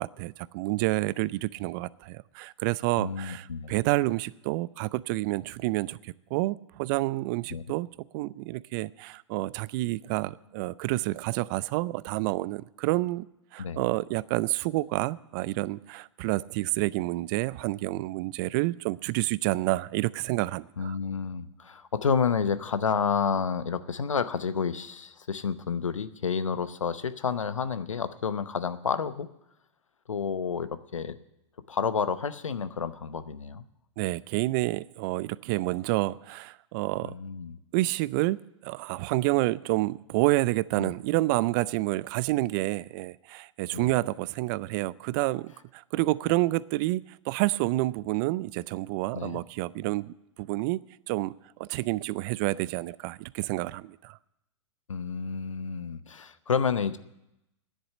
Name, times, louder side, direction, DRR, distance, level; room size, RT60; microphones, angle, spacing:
voice 1, 0.0-7.9 8.1-13.3 13.5-21.0 34.0-37.1 37.7-47.0 47.3-50.8 51.1-51.3 51.6-54.2, right 19 dB, 40° right, 21 dB, 0.4 m, -29 dB
voice 2, 3.0-3.7 7.5-7.6 13.6-13.8 20.8-29.3 30.1-31.2 31.7-33.6 37.0-37.6 40.8-40.9 43.7-43.9 49.1-49.4 54.9-57.0, left 6 dB, 85° left, 14 dB, 0.8 m, -30 dB
10.0 x 7.9 x 9.6 m, 0.86 s
hypercardioid pair, 110°, 16 cm